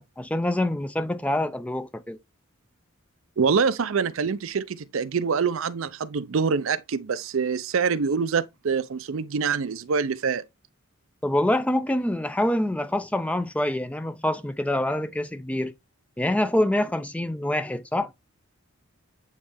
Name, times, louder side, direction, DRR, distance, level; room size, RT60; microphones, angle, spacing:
voice 1, 0.0-2.2 11.2-15.7 16.2-18.1, left 1 dB, 5° left, 0.4 m, -26 dB
voice 2, 3.4-10.4, right 5 dB, 70° right, 0.5 m, -25 dB
8.6 x 3.2 x 3.4 m
head